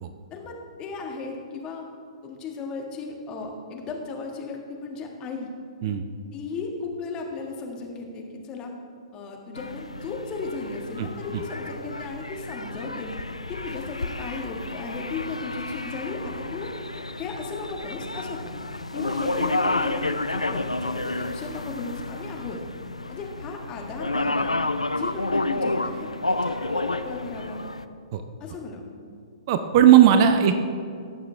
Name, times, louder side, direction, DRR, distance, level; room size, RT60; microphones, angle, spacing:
voice 1, 0.3-1.9 2.2-5.5 6.3-8.7 9.1-13.1 13.5-16.7 17.2-18.5 18.9-22.6 23.1-24.5 24.9-27.6 28.4-28.8 30.4-30.6, left 4 dB, 25° left, 1 dB, 1.5 m, -35 dB
sound 1, 9.5-27.8, left 2 dB, 90° left, 0.4 m, -30 dB
voice 2, 29.5-30.6, right 9 dB, 40° right, 9 dB, 0.6 m, -17 dB
17.5 x 6.8 x 3.3 m, 2.4 s
figure-of-eight pair, 120°, 3 cm